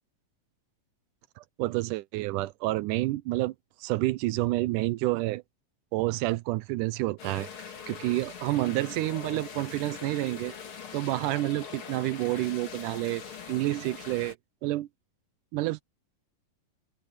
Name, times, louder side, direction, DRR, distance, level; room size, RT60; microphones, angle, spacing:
voice 1, 1.4-3.5 3.8-5.4 5.9-7.5 7.9-10.5 10.9-14.4 14.6-14.9 15.5-15.8, right 18 dB, 80° right, 1.9 m, -29 dB
sound 1, 7.2-14.3, left 7 dB, 40° left, 2.5 m, -42 dB
open air
omnidirectional pair, 4.0 m